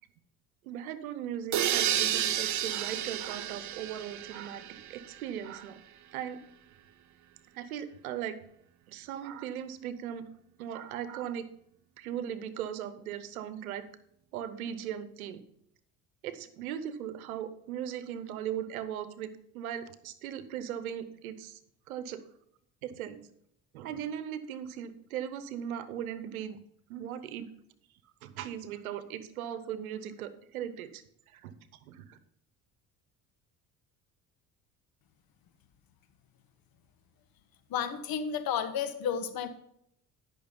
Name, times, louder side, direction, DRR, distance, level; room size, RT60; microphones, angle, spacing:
voice 1, 0.6-5.8 6.1-6.4 7.5-8.4 8.9-10.3 10.6-11.5 12.0-13.8 14.3-15.4 16.2-19.3 19.5-21.6 21.9-22.2 22.8-23.3 23.7-26.6 26.9-27.5 28.2-31.6 31.8-32.2, right 9 dB, 90° right, 13 dB, 0.9 m, -38 dB
sound 1, 1.5-5.3, right 10 dB, 45° right, 0.8 m, -31 dB
voice 2, 37.7-39.5, left 8 dB, 55° left, 9 dB, 1.4 m, -32 dB
12.0 x 6.2 x 5.2 m, 0.72 s
hypercardioid pair, 65°, 41 cm